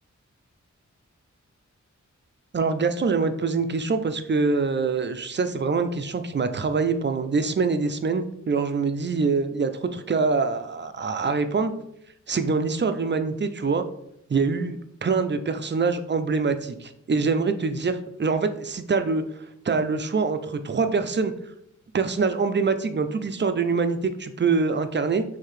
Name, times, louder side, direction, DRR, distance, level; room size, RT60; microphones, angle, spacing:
voice 1, 2.5-11.7 12.3-13.8 14.3-19.2 19.6-21.3 21.9-25.2, right 4 dB, 40° right, 9 dB, 0.5 m, -24 dB
4.6 x 3.4 x 3.2 m, 0.75 s
wide cardioid pair, 65°, 30 cm